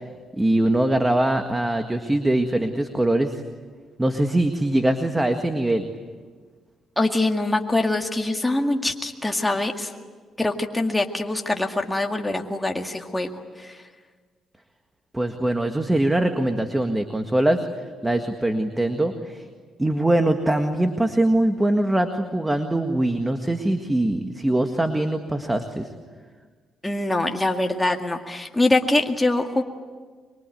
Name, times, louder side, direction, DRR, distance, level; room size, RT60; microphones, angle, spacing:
voice 1, 0.3-3.4 4.0-5.9 15.1-17.7 18.0-19.4 19.8-25.9, right 1 dB, 10° right, 6 dB, 1.7 m, -22 dB
voice 2, 7.0-9.9 10.4-13.8 26.8-29.6, left 2 dB, 10° left, 3 dB, 2.0 m, -24 dB
24.5 x 23.5 x 9.3 m, 1.5 s
cardioid pair, 90°, 0 cm